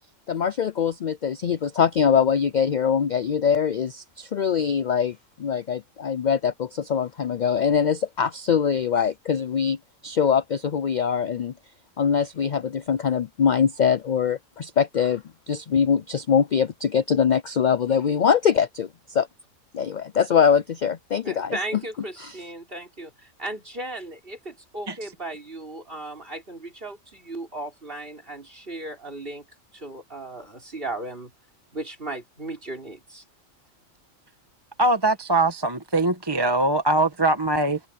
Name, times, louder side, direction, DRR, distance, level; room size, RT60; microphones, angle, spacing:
voice 1, 0.3-9.8 10.0-11.5 12.0-19.3 19.7-21.6 22.2-22.4, left 7 dB, 60° left, 0.5 m, -23 dB
voice 2, 21.2-29.4 29.7-31.3 31.7-33.2, right 2 dB, 40° right, 4.9 m, -36 dB
voice 3, 34.8-37.8, right 2 dB, 20° right, 1.2 m, -22 dB
open air
omnidirectional pair, 1.4 m